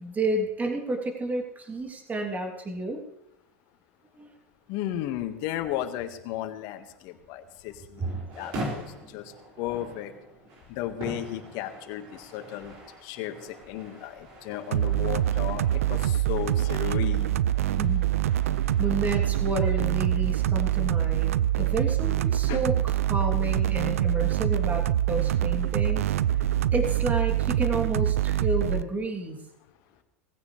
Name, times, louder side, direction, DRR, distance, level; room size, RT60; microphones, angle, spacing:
voice 1, 0.0-3.0 4.2-4.3 8.0-8.1 17.8-18.0 18.8-26.1 26.7-29.4, right 2 dB, 20° right, 2 dB, 3.1 m, -30 dB
voice 2, 4.7-10.1 10.7-12.8 13.0-17.4 22.5-22.6, left 12 dB, 60° left, 8 dB, 1.7 m, -34 dB
sound 1, 7.9-19.9, right 1 dB, 55° right, 5.7 m, -43 dB
sound 2, 14.7-28.8, right 12 dB, 80° right, 0.5 m, -25 dB
19.5 x 15.5 x 3.3 m, 0.84 s
hypercardioid pair, 90°, 8 cm